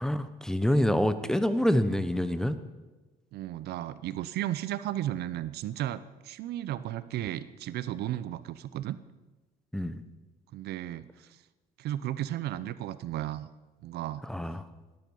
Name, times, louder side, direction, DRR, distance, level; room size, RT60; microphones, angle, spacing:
voice 1, 0.0-2.6 9.7-10.0 14.3-14.6, equal, 5° left, 12 dB, 0.9 m, -26 dB
voice 2, 3.3-9.0 10.5-11.4 11.8-13.5 13.8-14.3, right 13 dB, 75° right, 15 dB, 0.7 m, -34 dB
17.5 x 12.0 x 5.4 m, 1.2 s
cardioid pair, 110°, 17 cm